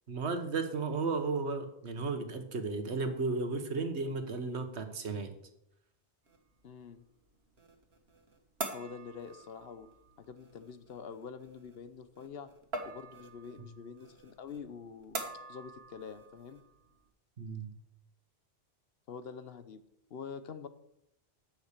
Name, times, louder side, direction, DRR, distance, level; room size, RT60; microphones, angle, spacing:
voice 1, 0.1-5.3 17.4-17.7, right 4 dB, 90° right, 7 dB, 1.5 m, -34 dB
sound 1, 6.2-17.1, right 2 dB, 70° right, 1.8 m, -46 dB
voice 2, 6.6-7.0 8.7-9.9 10.2-12.5 12.8-15.2 15.5-16.6 19.1-19.8 20.1-20.7, left 6 dB, 65° left, 12 dB, 1.0 m, -46 dB
9.8 x 6.5 x 6.6 m, 0.77 s
omnidirectional pair, 1.1 m